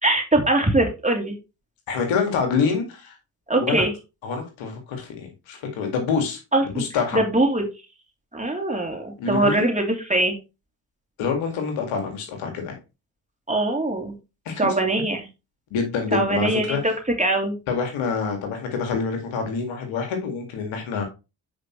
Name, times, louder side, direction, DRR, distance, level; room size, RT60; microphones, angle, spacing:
voice 1, 0.0-1.4 3.5-3.9 6.5-6.8 7.1-7.6 8.3-10.4 13.5-14.2 14.6-15.2 16.1-16.9 17.2-17.6, right 2 dB, 15° right, 2 dB, 3.0 m, -22 dB
voice 2, 1.9-3.1 3.5-3.9 4.2-6.4 6.7-7.2 9.2-9.6 11.2-12.7 14.5-14.6 15.7-16.8 17.7-21.0, left 5 dB, 80° left, 3 dB, 2.1 m, -26 dB
8.8 x 5.1 x 3.1 m, 0.28 s
hypercardioid pair, 40°, 46 cm